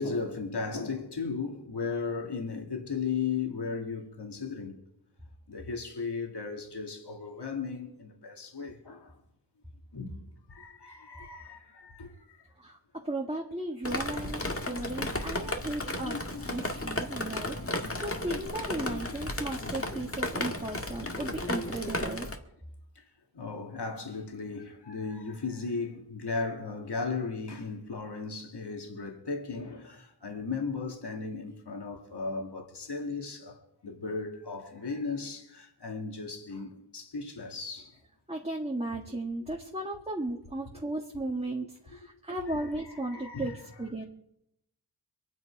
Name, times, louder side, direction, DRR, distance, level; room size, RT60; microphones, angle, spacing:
voice 1, 0.0-4.8 5.5-9.2 9.9-10.2 10.5-12.5 22.9-38.0 41.9-42.0 42.4-43.6, left 4 dB, 60° left, 2.6 m, -36 dB
voice 2, 12.6-22.3 38.3-44.0, right 2 dB, 15° right, 1.8 m, -36 dB
Drip, 13.9-22.4, left 1 dB, 30° left, 1.8 m, -34 dB
25.5 x 9.5 x 4.9 m
wide cardioid pair, 80°, 46 cm